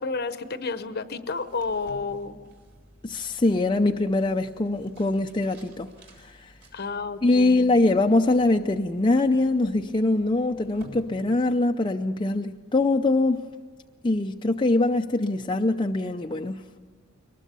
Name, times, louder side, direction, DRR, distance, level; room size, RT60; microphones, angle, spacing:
voice 1, 0.0-2.4 6.7-7.6, left 4 dB, 50° left, 11 dB, 0.9 m, -31 dB
sound 1, 1.3-11.8, equal, 55° right, 3.9 m, -52 dB
voice 2, 3.0-5.9 7.2-13.4 14.0-16.6, left 2 dB, 20° left, 3 dB, 0.5 m, -23 dB
22.5 x 20.0 x 6.9 m, 1.5 s
head